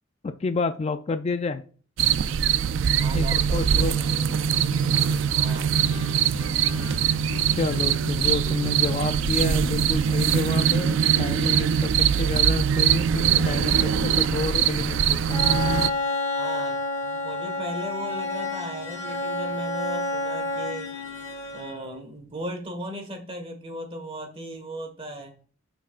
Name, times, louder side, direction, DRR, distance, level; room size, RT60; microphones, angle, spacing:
voice 1, 0.2-1.6 3.1-4.0 7.5-15.4, left 3 dB, 30° left, 10 dB, 0.3 m, -29 dB
sound 1, 2.0-15.9, right 8 dB, 70° right, 0.3 m, -22 dB
voice 2, 3.0-4.1 5.3-5.8 16.3-20.9 21.5-25.3, right 1 dB, 30° right, 4 dB, 1.6 m, -37 dB
Guitar, 3.5-11.0, equal, 75° left, 1.4 m, -41 dB
Bowed string instrument, 15.3-22.0, left 2 dB, 15° left, 1.6 m, -29 dB
11.0 x 6.0 x 2.5 m, 0.42 s
head